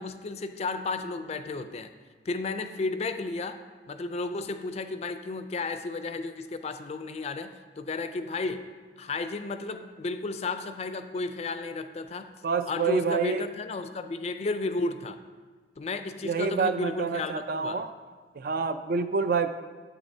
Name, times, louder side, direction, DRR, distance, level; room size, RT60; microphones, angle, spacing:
voice 1, 0.0-1.9 2.3-3.6 3.9-8.6 9.0-12.3 12.7-15.2 15.8-17.8, left 3 dB, 35° left, 9 dB, 0.4 m, -33 dB
voice 2, 12.4-13.4 16.2-17.9 18.4-19.5, right 5 dB, 55° right, 10 dB, 0.4 m, -27 dB
9.7 x 7.7 x 2.7 m, 1.4 s
head